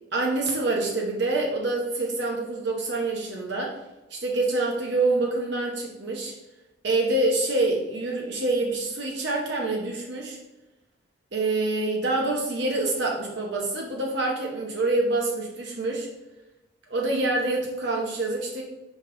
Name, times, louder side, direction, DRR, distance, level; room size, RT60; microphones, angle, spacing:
voice 1, 0.1-3.8 4.1-6.3 6.8-10.4 11.3-16.1 16.9-18.6, right 2 dB, 65° right, -1 dB, 0.9 m, -26 dB
5.3 x 5.2 x 3.8 m, 1.0 s
head